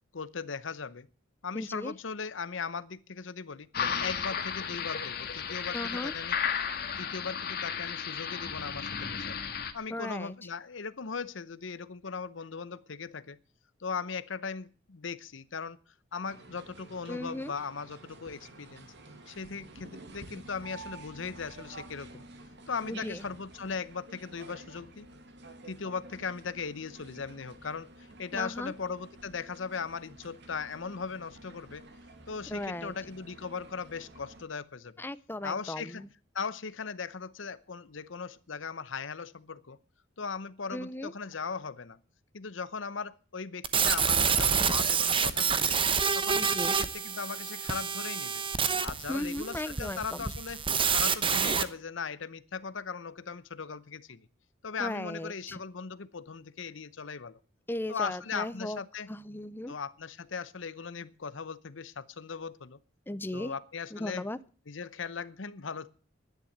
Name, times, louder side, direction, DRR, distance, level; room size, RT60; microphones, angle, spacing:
voice 1, 0.1-1.1 1.4-3.7 4.0-6.4 7.0-9.4 9.7-13.4 13.8-15.8 16.1-18.9 19.3-22.2 22.7-25.1 25.7-31.8 32.3-34.9 35.4-36.0 36.3-39.8 40.2-42.0 42.3-45.8 46.1-48.4 48.8-50.6 50.9-54.3 54.6-57.4 57.9-59.1 59.7-62.8 63.3-64.2 64.7-65.9, left 5 dB, 75° left, 15 dB, 0.8 m, -38 dB
voice 2, 1.5-1.9 5.7-6.1 9.9-10.3 17.1-17.5 22.9-23.2 28.3-28.7 32.5-32.9 35.0-36.1 40.7-41.1 46.3-46.8 49.1-50.3 54.8-55.6 57.7-58.8 59.1-59.7 63.1-63.5 63.9-64.4, left 1 dB, 10° left, 16 dB, 0.6 m, -37 dB
sound 1, 3.7-9.7, left 7 dB, 55° left, 1.8 m, -34 dB
sound 2, 16.2-34.4, right 2 dB, 60° right, 2.4 m, -51 dB
sound 3, 43.6-51.6, right 6 dB, 25° right, 1.0 m, -28 dB
11.5 x 10.0 x 7.9 m, 0.39 s
head